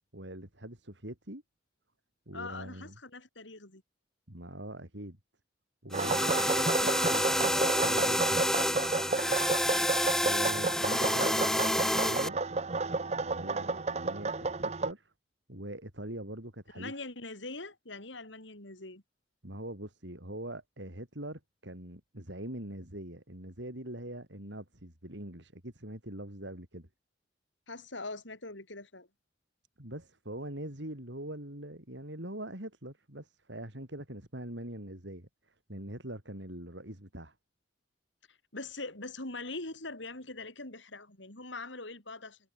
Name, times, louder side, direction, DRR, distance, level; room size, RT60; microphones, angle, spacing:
voice 1, 0.1-1.4 2.3-3.0 4.3-5.2 5.8-8.6 10.2-12.4 13.2-15.1 15.5-16.9 19.4-26.9 29.8-37.3, right 1 dB, 70° right, 5.4 m, -43 dB
voice 2, 2.3-3.8 6.2-6.5 9.6-10.2 16.7-19.0 27.7-29.1 38.5-42.4, left 3 dB, 80° left, 5.4 m, -42 dB
sound 1, 5.9-12.3, left 1 dB, 5° left, 1.5 m, -29 dB
sound 2, 5.9-14.9, right 3 dB, 35° right, 0.7 m, -32 dB
head